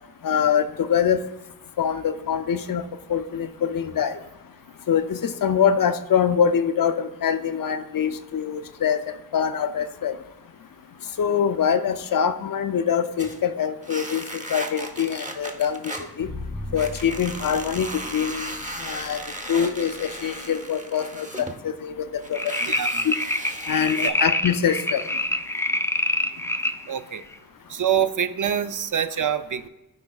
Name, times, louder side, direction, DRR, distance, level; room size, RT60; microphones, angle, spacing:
voice 1, 0.2-1.2 1.8-2.8 3.1-4.2 4.9-9.0 9.3-10.1 11.2-15.9 16.2-16.3 16.7-19.2 19.5-22.4 23.0-23.1 23.7-25.0, left 7 dB, 60° left, 11 dB, 0.5 m, -24 dB
sound 1, 13.2-13.5 13.8-16.1 16.7-21.6 22.1-24.1, right 1 dB, 20° right, 0.9 m, -36 dB
sound 2, 16.2-20.3, left 1 dB, 90° right, 2.5 m, -39 dB
sound 3, 22.3-26.8 27.3-27.4, left 1 dB, 10° left, 0.3 m, -26 dB
voice 2, 22.6-23.1 24.0-24.2 26.9-27.2 27.7-29.7, right 9 dB, 55° right, 12 dB, 0.5 m, -25 dB
13.0 x 4.7 x 2.3 m, 1.0 s
cardioid pair, 50°, 38 cm